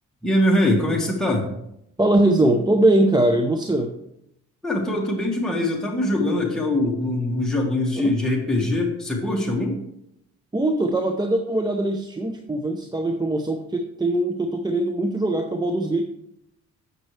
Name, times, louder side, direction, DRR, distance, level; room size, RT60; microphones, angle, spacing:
voice 1, 0.2-1.5 4.6-9.8, left 1 dB, ahead, -2 dB, 1.5 m, -22 dB
voice 2, 2.0-3.9 8.0-8.1 10.5-16.0, right 1 dB, 15° right, 4 dB, 0.6 m, -21 dB
7.4 x 6.6 x 3.2 m, 0.79 s
cardioid pair, 90°, 30 cm